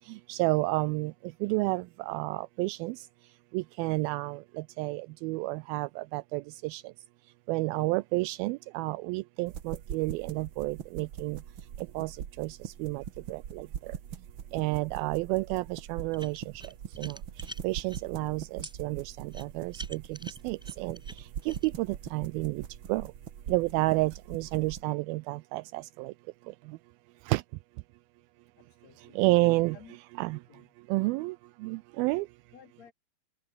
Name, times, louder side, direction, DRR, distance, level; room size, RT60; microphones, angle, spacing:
voice 1, 0.3-1.1 1.4-3.0 3.5-4.4 4.8-6.8 7.5-11.4 12.0-13.0 13.3-13.7 14.5-16.4 17.0-17.2 17.6-20.0 20.4-21.0 21.5-22.6 22.9-23.0 23.5-26.1 27.3-27.4 29.2-29.8 30.2-30.4 30.9-31.3 31.6-32.3, right 22 dB, 85° right, 2.3 m, -30 dB
sound 1, 9.5-24.8, right 9 dB, 65° right, 1.2 m, -42 dB
sound 2, 16.1-18.0 18.6-18.7 19.3-21.7, equal, ahead, 4.6 m, -46 dB
voice 2, 28.5-29.2 29.5-30.0 30.5-30.7 32.5-32.9, left 8 dB, 50° left, 3.4 m, -55 dB
omnidirectional pair, 4.3 m